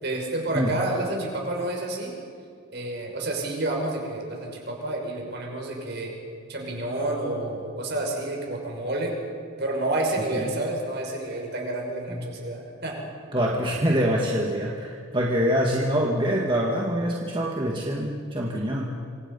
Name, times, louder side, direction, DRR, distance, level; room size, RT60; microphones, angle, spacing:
voice 1, 0.0-2.1 2.7-6.1 6.5-9.1 9.6-13.0, right 2 dB, 50° right, 0 dB, 5.9 m, -29 dB
voice 2, 0.5-0.8 10.3-10.5 12.1-12.3 13.3-19.0, equal, 25° right, -2 dB, 2.1 m, -25 dB
27.5 x 25.5 x 5.6 m, 2.2 s
head